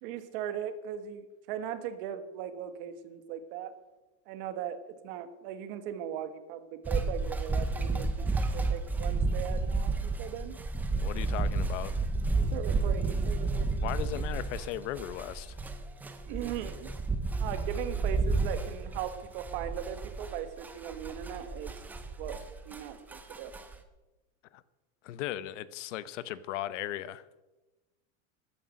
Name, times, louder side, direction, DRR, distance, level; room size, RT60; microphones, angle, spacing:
voice 1, 0.0-3.7 4.3-10.6 12.3-13.8 16.3-16.9 17.4-21.8 22.2-23.5, right 9 dB, 50° right, 1.5 m, -39 dB
sound 1, 6.9-22.8 23.1-23.8, right 3 dB, 5° right, 0.4 m, -31 dB
voice 2, 11.0-12.0 13.8-15.6 24.5-24.6 25.0-27.2, left 13 dB, 80° left, 1.0 m, -37 dB
14.5 x 11.5 x 6.4 m
supercardioid pair, 180°, 36 cm